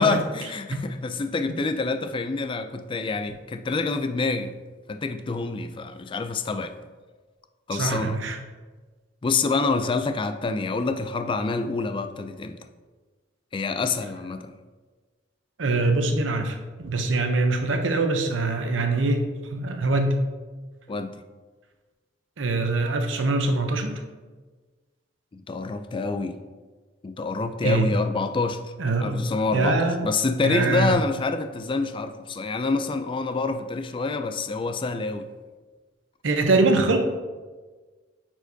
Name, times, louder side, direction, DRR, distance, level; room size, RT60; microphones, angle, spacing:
voice 1, 0.0-4.5 4.9-6.7 7.7-8.2 9.2-12.6 13.5-14.5 20.9-21.1 25.3-26.4 27.0-28.7 29.0-35.3, left 3 dB, 25° left, 9 dB, 0.3 m, -27 dB
voice 2, 7.7-8.4 15.6-20.2 22.4-23.9 27.6-27.9 28.8-29.3 29.5-30.1 30.4-31.0 36.2-37.0, right 2 dB, 85° right, 5 dB, 0.7 m, -23 dB
8.9 x 4.5 x 2.7 m, 1.4 s
head